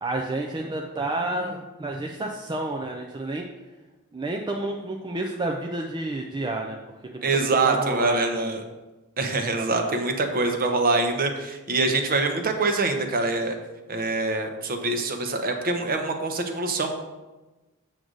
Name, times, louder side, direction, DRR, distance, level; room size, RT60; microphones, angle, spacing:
voice 1, 0.0-3.5 4.1-7.3 7.6-8.6 9.6-10.0, right 2 dB, 20° right, 1 dB, 0.5 m, -30 dB
voice 2, 7.2-8.6 9.2-13.6 13.9-16.9, right 3 dB, 40° right, 5 dB, 0.9 m, -24 dB
7.6 x 6.3 x 3.9 m, 1.1 s
head